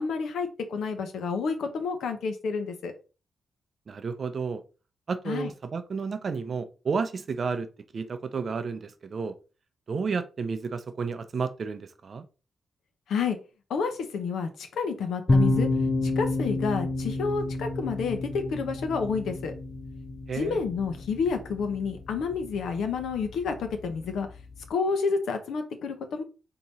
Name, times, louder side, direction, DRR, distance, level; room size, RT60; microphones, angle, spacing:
voice 1, 0.0-2.9 5.3-5.5 13.1-13.4 13.7-15.7 16.2-19.5 20.3-24.3 24.7-26.2, left 5 dB, 90° left, 0.9 m, -29 dB
voice 2, 3.9-4.6 5.1-7.7 7.9-9.3 9.9-12.2 20.3-20.6, right 5 dB, 50° right, 0.6 m, -31 dB
sound 1, 15.3-24.7, left 2 dB, 25° left, 0.4 m, -30 dB
3.7 x 2.9 x 4.1 m
cardioid pair, 95°, 0 cm